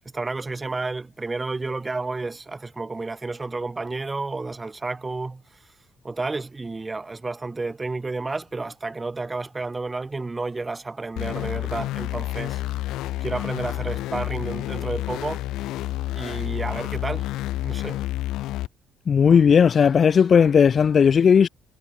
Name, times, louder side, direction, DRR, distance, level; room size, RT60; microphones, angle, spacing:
voice 1, 0.1-5.4 6.0-12.6 13.2-15.4 16.1-17.3 17.6-18.0, right 3 dB, 20° right, 4.3 m, -31 dB
sound 1, 11.2-18.7, left 16 dB, 80° left, 3.9 m, -29 dB
voice 2, 19.1-21.5, left 7 dB, 45° left, 1.9 m, -16 dB
cardioid pair, 90°, 0 cm